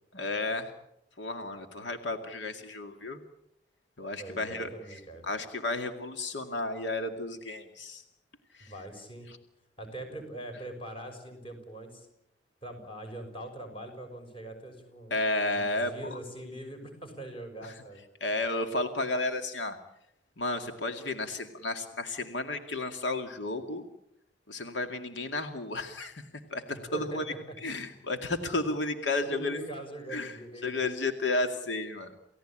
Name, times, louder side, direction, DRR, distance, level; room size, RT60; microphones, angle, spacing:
voice 1, 0.1-0.7 1.2-3.2 4.0-8.0 8.5-8.7 15.1-16.2 17.6-17.7 18.2-19.8 20.4-23.8 24.5-26.2 26.5-27.3 27.6-29.6 30.1-32.1, left 2 dB, 85° left, 6 dB, 2.2 m, -32 dB
voice 2, 4.2-5.2 8.6-9.3 9.8-12.1 12.6-15.1 15.5-18.0 26.7-27.6 28.7-28.8 29.2-30.8, right 1 dB, 30° left, 5 dB, 6.1 m, -42 dB
29.0 x 17.0 x 8.9 m, 0.82 s
head